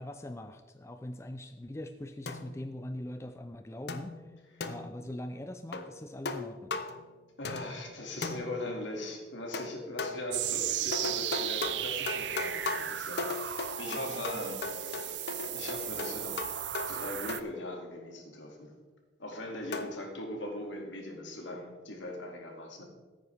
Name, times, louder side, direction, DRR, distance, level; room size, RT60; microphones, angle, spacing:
voice 1, 0.0-4.3 4.6-6.8, left 1 dB, 15° left, 7 dB, 0.4 m, -42 dB
sound 1, 2.3-2.7 3.9-5.1 5.7-6.0 6.2-7.1 7.4-7.9 8.2-8.8 9.5-10.4 10.9-17.7 19.7-20.1, left 3 dB, 60° left, 0.7 m, -38 dB
voice 2, 7.4-15.3 15.5-16.4 16.9-18.8 19.2-22.8, left 1 dB, 90° left, 1 dB, 2.2 m, -40 dB
sound 2, 10.3-17.4, right 12 dB, 75° right, 0.5 m, -35 dB
15.0 x 9.2 x 3.4 m, 1.3 s
head